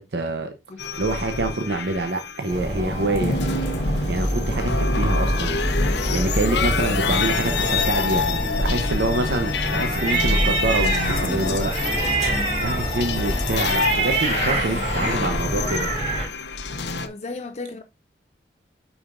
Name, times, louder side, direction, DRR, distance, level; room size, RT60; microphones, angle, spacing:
voice 1, 0.0-0.5 1.0-3.4 4.1-5.6 6.1-11.7 12.6-15.9, right 2 dB, 70° right, 0.7 m, -26 dB
sound 1, 0.8-17.1, left 4 dB, 75° left, 0.8 m, -27 dB
sound 2, 2.5-16.2, right 1 dB, 40° right, 3.4 m, -26 dB
sound 3, 5.8-13.5, left 1 dB, 15° left, 1.5 m, -34 dB
voice 2, 14.4-15.7 17.0-17.8, left 3 dB, 35° left, 0.4 m, -36 dB
8.7 x 5.0 x 2.5 m
head